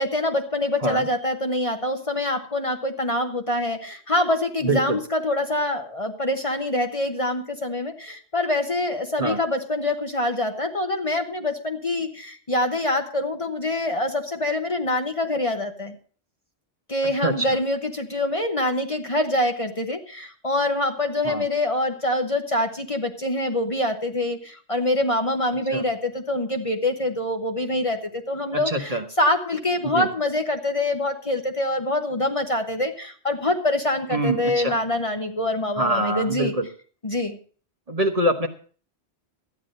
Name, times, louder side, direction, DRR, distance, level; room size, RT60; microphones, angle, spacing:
voice 1, 0.0-15.9 16.9-36.5 37.0-37.4, left 1 dB, 30° left, 5 dB, 1.1 m, -25 dB
voice 2, 4.6-5.0 9.2-9.4 17.2-17.5 21.2-21.4 25.7-25.8 28.7-29.0 29.9-30.1 34.1-34.8 35.8-36.7 37.9-38.5, right 1 dB, 35° right, 6 dB, 1.1 m, -24 dB
13.0 x 9.7 x 5.3 m, 0.42 s
omnidirectional pair, 1.1 m